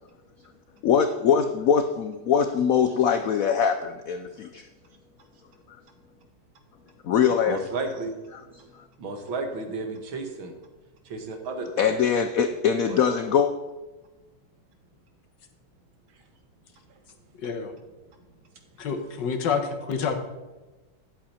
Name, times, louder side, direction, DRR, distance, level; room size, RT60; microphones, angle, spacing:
voice 1, 0.8-4.6 7.0-7.6 11.8-13.5, left 7 dB, 85° left, 8 dB, 0.7 m, -22 dB
voice 2, 7.5-8.1 9.0-10.5 11.1-11.9 12.9-13.0, right 3 dB, 85° right, 5 dB, 2.2 m, -32 dB
voice 3, 17.4-17.7 18.8-20.2, left 6 dB, 65° left, 6 dB, 1.6 m, -28 dB
11.0 x 7.6 x 4.3 m, 1.2 s
omnidirectional pair, 2.1 m